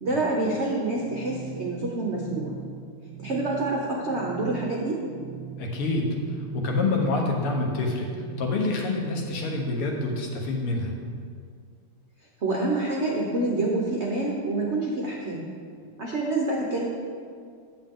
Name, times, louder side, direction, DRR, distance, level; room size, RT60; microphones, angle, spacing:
voice 1, 0.0-2.5 3.2-5.0 12.4-15.5 16.0-16.9, right 2 dB, 65° right, -2 dB, 0.6 m, -27 dB
sound 1, 1.0-9.8, right 7 dB, 85° right, 1.5 m, -41 dB
voice 2, 5.6-8.1 8.4-11.0, left 2 dB, 80° left, 0 dB, 2.0 m, -27 dB
9.1 x 7.7 x 3.7 m, 2.2 s
omnidirectional pair, 2.4 m